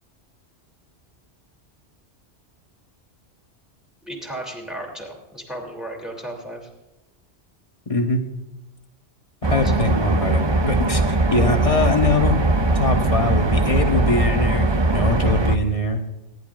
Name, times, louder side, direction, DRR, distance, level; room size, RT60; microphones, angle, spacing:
voice 1, 4.0-6.7 9.6-9.7, right 1 dB, ahead, 0 dB, 2.9 m, -34 dB
voice 2, 7.9-8.2 9.5-12.4 12.7-16.0, left 2 dB, 30° left, 4 dB, 1.2 m, -22 dB
sound 1, 9.4-15.6, right 2 dB, 30° right, 0.5 m, -20 dB
26.0 x 11.5 x 2.5 m, 0.99 s
omnidirectional pair, 1.2 m